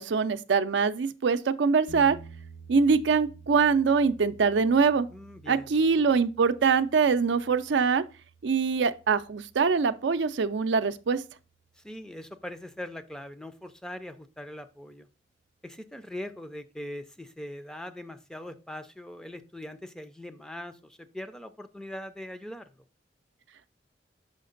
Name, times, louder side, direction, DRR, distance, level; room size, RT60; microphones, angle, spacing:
voice 1, 0.0-2.2 2.7-5.1 5.5-8.0 8.4-11.2, right 5 dB, 90° right, 0.5 m, -23 dB
sound 1, 1.9-11.9, right 4 dB, 60° left, 1.4 m, -51 dB
voice 2, 5.1-5.7 11.8-15.1 15.6-22.7, left 1 dB, 5° left, 0.4 m, -41 dB
6.4 x 5.1 x 3.8 m
head